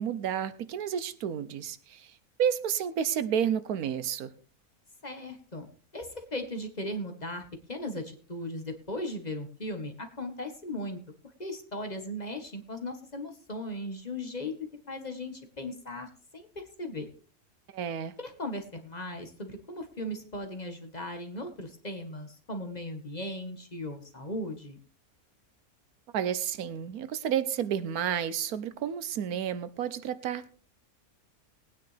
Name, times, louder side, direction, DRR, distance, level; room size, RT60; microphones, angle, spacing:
voice 1, 0.0-4.3 17.7-18.2 26.1-30.5, right 9 dB, 80° right, 1.3 m, -31 dB
voice 2, 5.0-5.7 5.9-11.0 11.4-14.5 14.9-17.1 18.2-24.8, left 1 dB, 30° left, 1.4 m, -37 dB
19.5 x 9.4 x 3.3 m
omnidirectional pair, 1.6 m